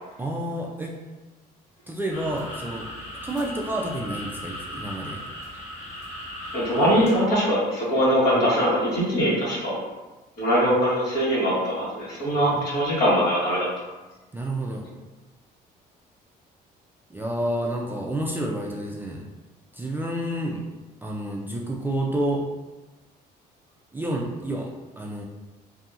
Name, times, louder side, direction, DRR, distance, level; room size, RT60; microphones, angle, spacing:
voice 1, 0.2-0.9 1.9-2.9 3.2-5.2 12.5-13.0 14.3-14.9 17.1-19.2 19.7-20.6 21.0-22.4 23.9-24.7 25.0-25.2, right 1 dB, 10° right, -2 dB, 0.3 m, -29 dB
sound 1, 2.1-7.2, equal, 40° left, 1.2 m, -37 dB
voice 2, 6.5-9.7 10.4-13.7, equal, 65° left, -7 dB, 1.4 m, -22 dB
2.7 x 2.6 x 2.4 m, 1.2 s
cardioid pair, 110°, 17 cm